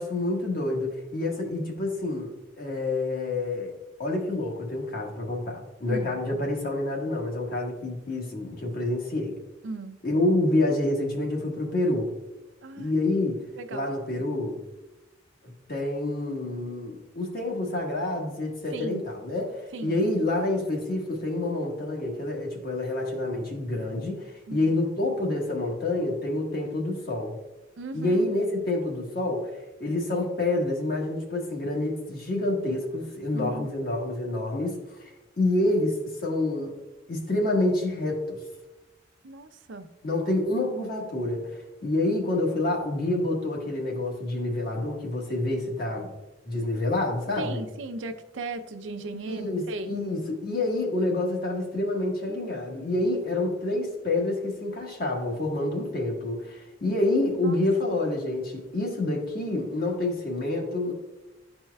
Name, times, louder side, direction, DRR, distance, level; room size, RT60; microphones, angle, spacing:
voice 1, 0.0-3.7 4.0-9.3 10.0-12.1 12.8-14.6 15.4-27.4 27.9-36.7 37.1-38.4 40.0-46.1 46.5-47.6 49.2-60.9, left 2 dB, 50° left, 0 dB, 1.3 m, -28 dB
voice 2, 5.9-6.2 9.6-10.0 12.6-12.9 13.6-13.9 18.7-19.0 19.7-20.0 24.5-24.7 27.8-28.2 33.3-33.7 39.2-39.9 47.4-49.9 57.4-57.6, right 3 dB, 80° right, 9 dB, 0.5 m, -37 dB
12.0 x 4.4 x 2.3 m, 1.1 s
head